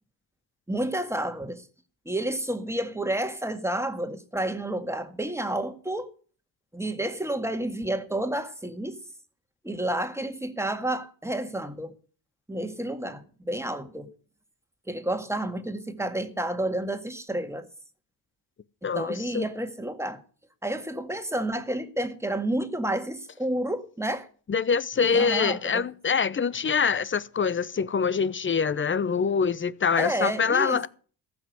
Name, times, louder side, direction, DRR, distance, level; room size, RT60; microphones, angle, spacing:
voice 1, 0.7-1.6 2.1-6.1 6.7-9.0 9.6-11.9 12.5-14.1 14.9-17.7 18.8-20.2 20.6-24.3 25.1-25.9 30.0-30.9, right 1 dB, 5° right, 1.8 m, -30 dB
voice 2, 18.8-19.5 24.5-30.9, left 6 dB, 30° left, 0.7 m, -25 dB
14.5 x 6.1 x 8.1 m
supercardioid pair, 60°, 41 cm